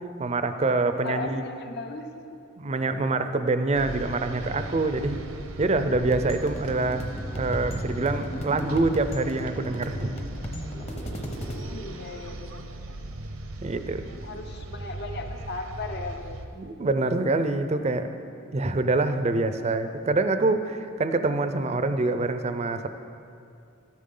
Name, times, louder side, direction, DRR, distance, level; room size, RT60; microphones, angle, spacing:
voice 1, 0.2-1.4 2.6-5.2 5.6-10.1 13.6-14.1 16.6-18.1 18.5-22.9, right 2 dB, 30° right, 9 dB, 0.5 m, -25 dB
voice 2, 1.0-2.4 11.5-12.6 14.2-16.7 21.3-21.4, left 3 dB, 50° left, 6 dB, 0.7 m, -37 dB
sound 1, 3.7-16.5, right 2 dB, 85° right, 0.8 m, -38 dB
sound 2, 5.9-11.6, equal, 30° left, 1.0 m, -36 dB
13.0 x 10.0 x 3.8 m, 2.4 s
head